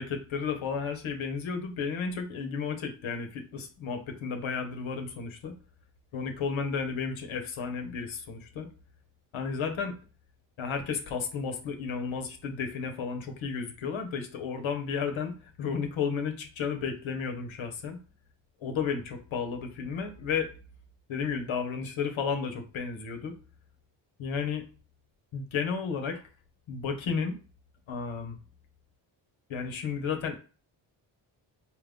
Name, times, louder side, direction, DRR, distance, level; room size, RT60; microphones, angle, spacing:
voice 1, 0.0-5.6 6.1-8.7 9.3-9.9 10.6-18.0 18.6-20.5 21.1-23.3 24.2-24.6 25.3-26.2 26.7-27.4 27.9-28.4 29.5-30.4, left 6 dB, 75° left, 5 dB, 0.9 m, -33 dB
4.5 x 2.3 x 3.6 m, 0.36 s
cardioid pair, 55°, 48 cm